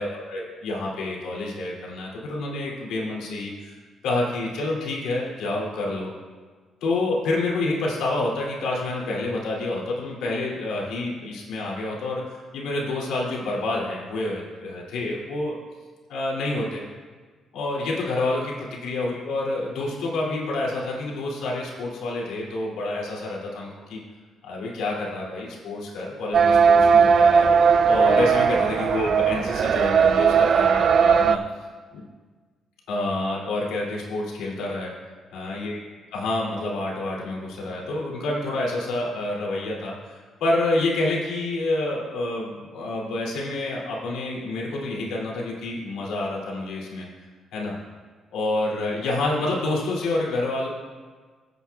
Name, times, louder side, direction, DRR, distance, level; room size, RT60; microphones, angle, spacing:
voice 1, 0.0-3.7 4.0-6.1 6.8-15.6 16.1-16.8 17.5-18.5 18.8-24.0 24.4-27.5 27.8-31.4 31.9-32.0 32.9-34.9 35.3-35.8 36.1-47.1 47.5-47.8 48.3-50.7, left 2 dB, 90° left, -4 dB, 2.5 m, -28 dB
sound 1, 26.3-31.4, right 6 dB, 60° right, 0.4 m, -18 dB
18.0 x 8.2 x 2.3 m, 1.5 s
cardioid pair, 90°, 0 cm